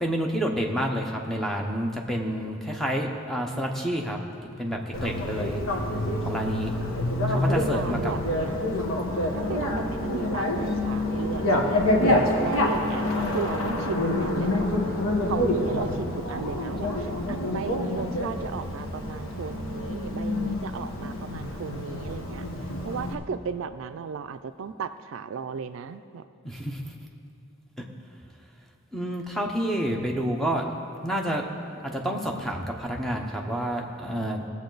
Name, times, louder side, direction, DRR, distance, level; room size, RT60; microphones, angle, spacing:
voice 1, 0.0-4.2 4.6-5.6 6.2-6.7 7.3-8.1 26.4-26.8 28.9-30.6 31.0-31.4 31.8-34.4, equal, ahead, 1 dB, 0.8 m, -29 dB
Bicycle, 4.9-23.1, left 1 dB, 90° left, 1.2 m, -27 dB
voice 2, 7.3-8.7 9.4-11.9 12.4-13.1 13.3-14.8 15.3-22.4 22.8-26.3, right 6 dB, 75° right, 11 dB, 0.4 m, -35 dB
18.0 x 7.2 x 3.9 m, 2.6 s
head